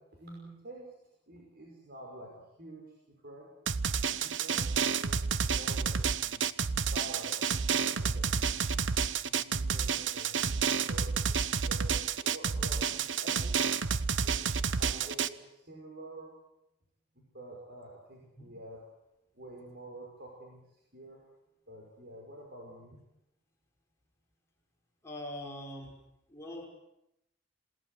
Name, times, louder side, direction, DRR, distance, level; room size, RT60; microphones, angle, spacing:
voice 1, 0.2-0.9 1.3-2.3 2.6-2.9 3.2-3.5 4.1-7.4 7.7-8.6 9.2-11.9 12.2-13.6 14.2-16.3 17.2-18.8 19.3-20.6 20.9-21.2 21.7-23.0, right 1 dB, 55° right, -1 dB, 5.7 m, -48 dB
Drum, 3.7-15.3, right 6 dB, 70° right, 0.9 m, -30 dB
voice 2, 25.0-26.0 26.3-26.7, left 1 dB, 15° left, -2 dB, 6.0 m, -42 dB
27.5 x 19.0 x 8.2 m, 0.86 s
head